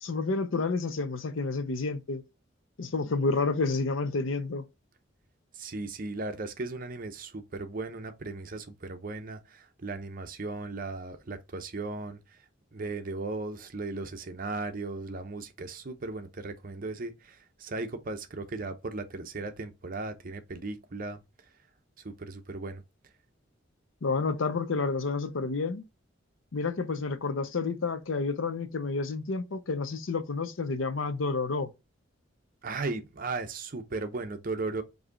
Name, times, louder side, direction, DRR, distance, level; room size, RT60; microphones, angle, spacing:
voice 1, 0.0-2.2 2.8-4.7 24.0-25.8 26.5-31.7, left 3 dB, 80° left, 0.6 m, -30 dB
voice 2, 5.5-12.2 12.7-21.2 22.0-22.8 32.6-34.8, right 3 dB, 45° right, 0.6 m, -36 dB
4.8 x 2.7 x 3.8 m
head